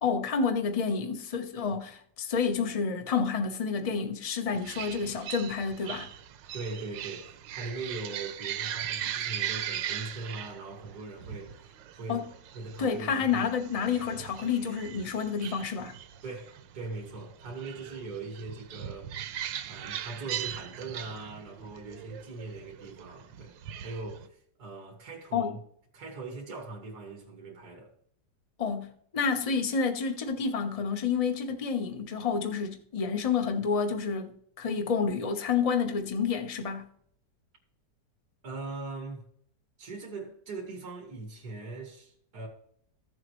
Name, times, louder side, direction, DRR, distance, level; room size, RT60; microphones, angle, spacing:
voice 1, 0.0-6.1 12.1-12.3 12.8-16.0 25.3-25.6 28.6-36.9, left 5 dB, 30° left, 0.8 m, -29 dB
sound 1, 4.5-24.3, right 10 dB, 85° right, 1.4 m, -39 dB
voice 2, 6.5-12.3 12.5-13.3 16.2-19.1 19.6-23.6 23.8-25.5 25.9-27.9 38.4-39.2 39.8-42.5, right 3 dB, 60° right, 2.5 m, -40 dB
14.0 x 7.5 x 3.1 m
omnidirectional pair, 1.9 m